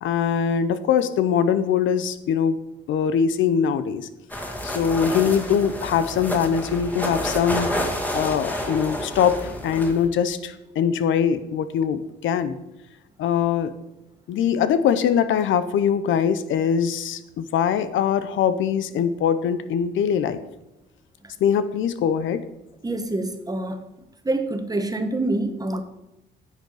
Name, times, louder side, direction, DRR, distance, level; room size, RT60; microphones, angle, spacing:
voice 1, 0.0-2.6 2.9-4.1 4.6-7.7 8.1-12.6 13.2-13.7 14.3-20.4 21.4-22.5, left 7 dB, 75° left, 12 dB, 0.7 m, -22 dB
sound 1, 4.3-10.1, left 1 dB, 10° left, 1.9 m, -29 dB
voice 2, 22.8-23.8 24.2-25.8, right 2 dB, 20° right, 7 dB, 1.2 m, -26 dB
10.0 x 6.7 x 4.9 m, 0.93 s
cardioid pair, 90°, 20 cm